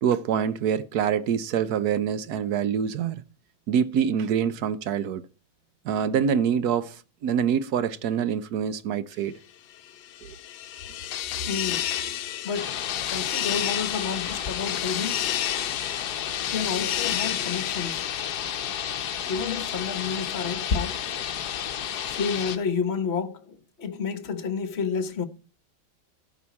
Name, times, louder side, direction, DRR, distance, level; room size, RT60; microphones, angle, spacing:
voice 1, 0.0-3.2 3.7-5.2 5.8-9.3 10.2-10.3, right 8 dB, 60° right, 1.1 m, -25 dB
sound 1, 9.9-19.0, left 11 dB, 75° left, 1.5 m, -32 dB
voice 2, 11.5-11.9 12.4-12.8 13.1-15.4 16.5-18.0 19.3-21.1 22.1-25.2, left 5 dB, 40° left, 1.2 m, -30 dB
sound 2, 12.5-22.6, left 9 dB, 60° left, 1.3 m, -32 dB
13.5 x 5.0 x 8.4 m
omnidirectional pair, 2.2 m